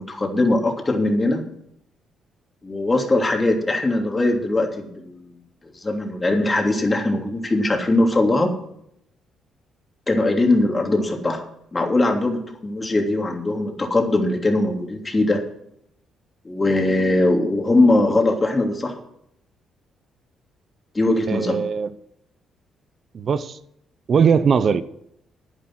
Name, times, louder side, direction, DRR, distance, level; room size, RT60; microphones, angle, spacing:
voice 1, 0.0-1.4 2.6-5.3 5.7-8.5 10.1-11.4 11.7-15.4 16.4-19.0 20.9-21.6, left 2 dB, 25° left, 2 dB, 3.0 m, -20 dB
voice 2, 21.3-21.9 23.1-23.6 24.1-24.8, right 6 dB, 50° right, 14 dB, 0.8 m, -19 dB
10.5 x 10.0 x 6.2 m, 0.75 s
cardioid pair, 90°, 0 cm